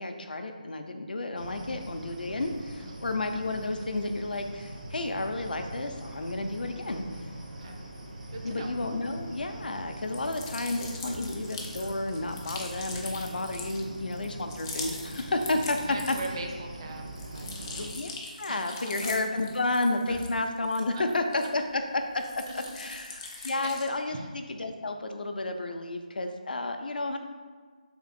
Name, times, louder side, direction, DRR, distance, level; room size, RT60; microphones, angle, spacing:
voice 1, 0.0-7.0 8.4-16.2 17.8-27.2, left 2 dB, 80° left, 5 dB, 0.4 m, -31 dB
sound 1, 1.4-17.9, right 1 dB, 65° right, 0.7 m, -42 dB
sound 2, 7.6-23.2, left 1 dB, 85° right, 1.2 m, -52 dB
voice 2, 8.3-8.7 15.5-18.0 18.2-18.8 20.9-21.0 23.3-23.7 24.1-24.3, right 2 dB, 35° right, 2 dB, 0.4 m, -41 dB
sound 3, 10.0-16.5 16.9-21.8 22.1-24.0, left 3 dB, 25° left, 0.4 m, -42 dB
3.5 x 2.5 x 4.1 m, 1.5 s
figure-of-eight pair, 165°, 5 cm